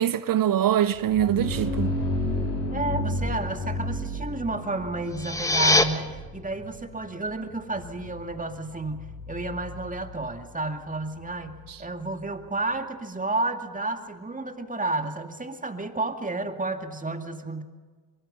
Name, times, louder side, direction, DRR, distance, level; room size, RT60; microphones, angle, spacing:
voice 1, 0.0-1.9 11.7-11.8, right 11 dB, 50° right, 0.8 m, -23 dB
sound 1, 0.9-12.5, left 1 dB, 90° left, 3.5 m, -33 dB
voice 2, 2.7-17.6, right 2 dB, 15° right, 2.2 m, -31 dB
sound 2, 5.0-5.8, left 2 dB, 5° left, 1.6 m, -22 dB
23.5 x 23.0 x 5.5 m
hypercardioid pair, 45°, 45 cm